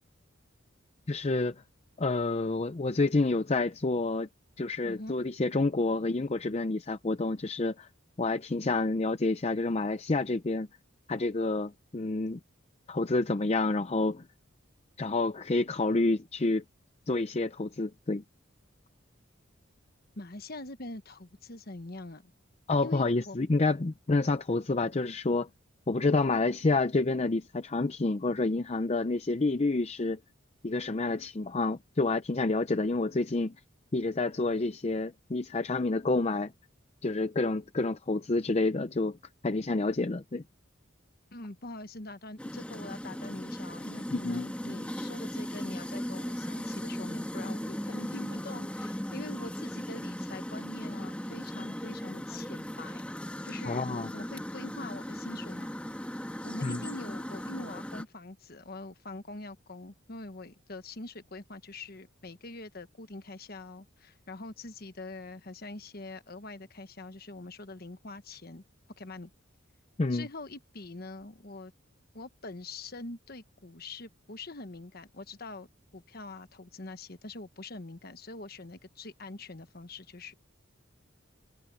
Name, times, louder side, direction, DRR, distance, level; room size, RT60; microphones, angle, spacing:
voice 1, 1.1-1.6 2.0-4.3 4.6-7.9 8.2-10.7 11.1-12.4 12.9-14.3 15.0-16.6 17.1-18.2 22.7-25.5 25.9-30.2 30.6-33.5 33.9-36.5 37.0-39.2 39.4-40.4 44.1-44.5 53.6-54.1 56.6-56.8 70.0-70.3, left 3 dB, 30° left, 0.5 m, -28 dB
voice 2, 4.8-5.1 20.2-22.3 22.8-23.4 41.3-53.0 53.4-55.8 56.4-68.6 69.0-69.3 70.1-71.7 72.1-75.7 75.9-80.3, left 2 dB, 50° left, 1.3 m, -44 dB
sound 1, 42.4-58.0, equal, 5° left, 2.1 m, -37 dB
head